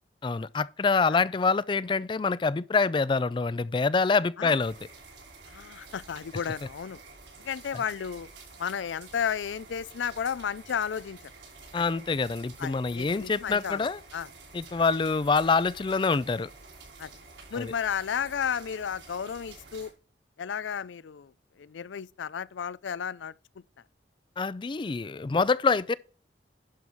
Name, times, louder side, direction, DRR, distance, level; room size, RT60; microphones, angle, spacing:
voice 1, 0.2-4.8 11.7-14.0 14.5-16.5 17.5-17.7 24.4-26.0, left 4 dB, 25° left, 0.3 m, -26 dB
sound 1, 4.6-19.9, right 3 dB, 85° right, 5.8 m, -50 dB
voice 2, 5.4-7.0 7.4-8.3 8.6-11.2 11.7-11.8 12.6-14.3 14.8-14.9 17.0-17.1 17.5-19.9 20.4-21.3 21.6-23.3, left 7 dB, 90° left, 0.4 m, -33 dB
11.0 x 5.5 x 4.5 m
head